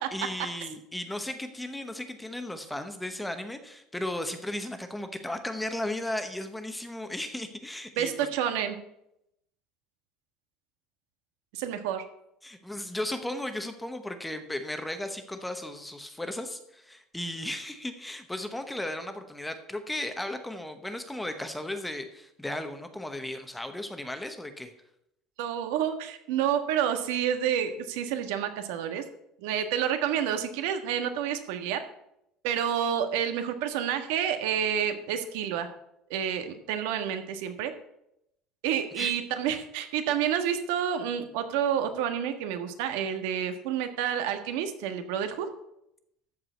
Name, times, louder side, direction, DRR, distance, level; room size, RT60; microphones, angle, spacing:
voice 1, 0.1-8.3 12.4-24.7 39.0-39.1, left 1 dB, 5° left, 7 dB, 0.9 m, -35 dB
voice 2, 8.0-8.8 11.5-12.0 25.4-29.0 29.4-31.8 32.4-35.7 36.1-37.7 38.6-45.5, right 9 dB, 90° right, 8 dB, 1.5 m, -29 dB
13.5 x 4.8 x 8.1 m, 0.80 s
cardioid pair, 175°, 0 cm